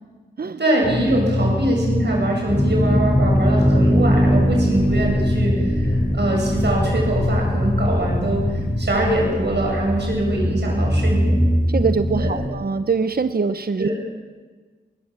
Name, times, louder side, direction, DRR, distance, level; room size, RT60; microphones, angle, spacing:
voice 1, 0.6-11.4 12.2-12.3 13.8-13.9, right 1 dB, 75° right, -1 dB, 7.9 m, -23 dB
sound 1, 0.8-8.8, left 1 dB, 70° left, 3.9 m, -24 dB
sound 2, 2.5-12.5, equal, 15° left, 3.7 m, -21 dB
voice 2, 11.7-13.9, right 5 dB, 60° right, 11 dB, 0.8 m, -23 dB
21.5 x 20.0 x 7.7 m, 1.4 s
wide cardioid pair, 85°, 18 cm